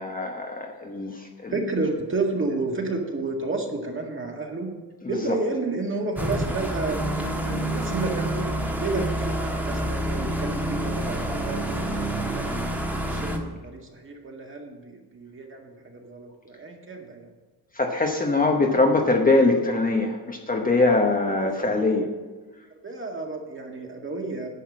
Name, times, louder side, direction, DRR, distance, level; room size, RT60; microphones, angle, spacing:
voice 1, 0.0-1.5 5.3-5.4 17.8-22.1, left 2 dB, 20° left, 2 dB, 1.0 m, -22 dB
voice 2, 1.5-4.7 5.1-8.5 8.8-12.6 13.0-17.3 21.4-21.6 22.8-24.5, right 3 dB, 30° right, 1 dB, 1.9 m, -31 dB
sound 1, 6.2-13.4, right 1 dB, 5° right, 1.3 m, -28 dB
10.5 x 5.8 x 7.4 m, 1.3 s
cardioid pair, 115°, 40 cm